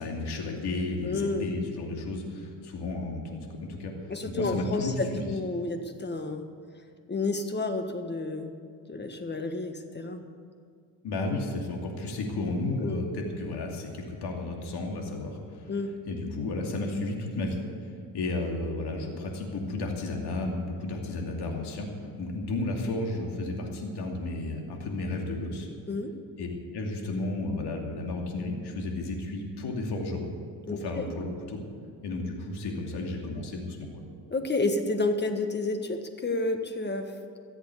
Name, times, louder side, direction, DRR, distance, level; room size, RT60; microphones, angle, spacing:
voice 1, 0.0-3.9 4.4-5.3 11.0-15.7 16.1-21.9 22.2-25.7 26.4-26.5 26.7-30.3 30.7-31.6 32.0-33.9, left 2 dB, 65° left, 1 dB, 2.7 m, -33 dB
voice 2, 1.0-1.5 4.1-6.5 7.1-8.5 8.9-10.2 12.8-13.0 15.7-15.9 25.9-26.1 30.7-31.1 34.3-37.1, left 2 dB, 25° left, 6 dB, 1.5 m, -30 dB
15.0 x 8.1 x 8.4 m, 2.3 s
cardioid pair, 90°, 42 cm